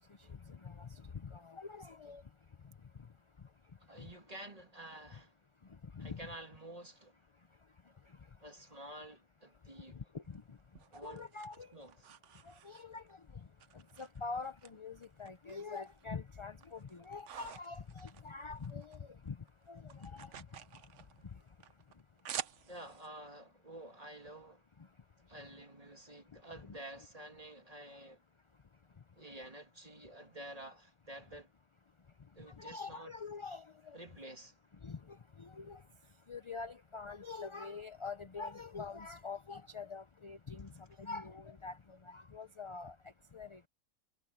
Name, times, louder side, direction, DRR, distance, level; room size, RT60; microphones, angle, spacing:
voice 1, 0.5-2.2 6.0-6.2 10.3-10.4 11.0-11.7 12.5-13.0 14.0-19.4 19.7-20.3 26.6-26.8 32.6-34.0 34.8-35.8 36.3-41.8 42.1-42.9 43.3-43.6, left 4 dB, 35° left, 0.5 m, -45 dB
voice 2, 3.8-5.3 6.0-7.1 8.4-10.0 10.9-11.2 11.7-12.1 22.7-24.6 25.3-28.2 29.2-31.5 32.3-33.1 33.9-34.6, right 1 dB, 25° right, 2.7 m, -50 dB
sound 1, 10.2-13.1 13.6-14.7 15.0-16.0 16.4-19.0 19.3-23.1, right 9 dB, 65° right, 1.1 m, -49 dB
omnidirectional pair, 1.4 m